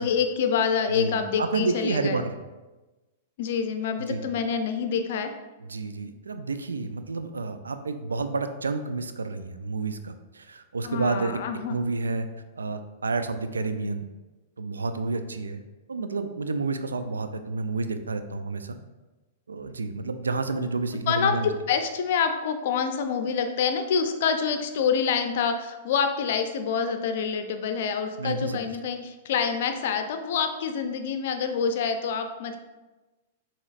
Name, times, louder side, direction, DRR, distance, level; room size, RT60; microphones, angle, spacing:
voice 1, 0.0-2.2 3.4-5.3 10.8-11.8 21.1-32.6, left 6 dB, 60° left, 7 dB, 0.5 m, -27 dB
voice 2, 1.0-2.3 4.1-4.3 5.7-11.4 11.7-12.3 12.6-14.0 14.6-15.6 15.9-18.8 19.5-21.5 28.2-28.6, right 3 dB, 90° right, 9 dB, 0.3 m, -30 dB
7.0 x 3.0 x 2.4 m, 1.1 s
hypercardioid pair, 110°, 0 cm